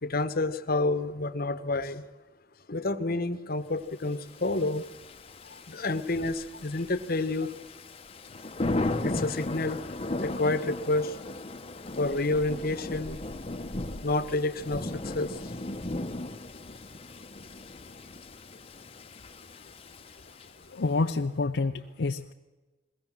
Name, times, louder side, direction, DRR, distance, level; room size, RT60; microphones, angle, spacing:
voice 1, 0.0-2.0 2.7-4.8 5.7-7.5 9.0-9.9 10.2-11.2 12.0-13.2 14.0-15.5, left 2 dB, 55° left, 9 dB, 1.1 m, -29 dB
Thunder / Rain, 4.3-20.8, left 2 dB, 35° left, 0.9 m, -37 dB
voice 2, 20.7-22.3, left 3 dB, 75° left, 4 dB, 0.6 m, -28 dB
21.0 x 17.5 x 7.4 m, 1.2 s
head